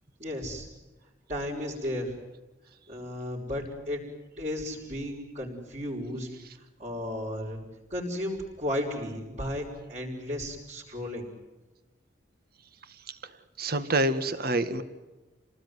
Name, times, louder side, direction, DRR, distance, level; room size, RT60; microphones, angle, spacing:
voice 1, 0.2-0.7 1.3-2.1 2.9-4.0 4.4-6.3 6.8-7.6 7.9-11.3, left 1 dB, 40° right, -7 dB, 5.8 m, -34 dB
voice 2, 13.6-14.8, right 1 dB, 55° right, 11 dB, 1.9 m, -26 dB
29.0 x 19.5 x 9.6 m, 1.1 s
head